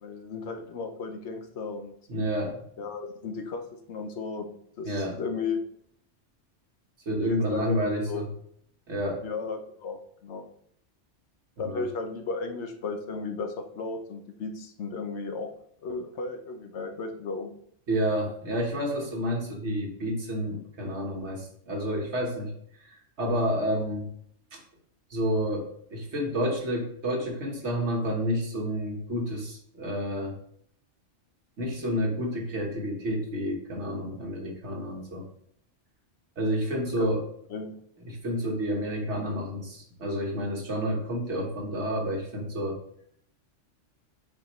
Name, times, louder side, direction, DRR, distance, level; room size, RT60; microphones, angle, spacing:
voice 1, 0.0-1.9 2.8-5.6 7.2-8.2 9.2-10.4 11.6-15.5 15.8-17.5 37.0-37.1 37.5-37.7, left 4 dB, 70° left, 5 dB, 1.1 m, -35 dB
voice 2, 2.1-2.6 4.8-5.2 7.0-8.3 8.9-9.2 11.6-11.8 17.9-22.5 23.2-24.1 24.5-24.6 25.1-30.4 31.6-35.2 36.4-37.2 38.1-42.8, equal, 70° right, 0 dB, 1.7 m, -29 dB
7.5 x 4.6 x 3.1 m, 0.66 s
omnidirectional pair, 1.2 m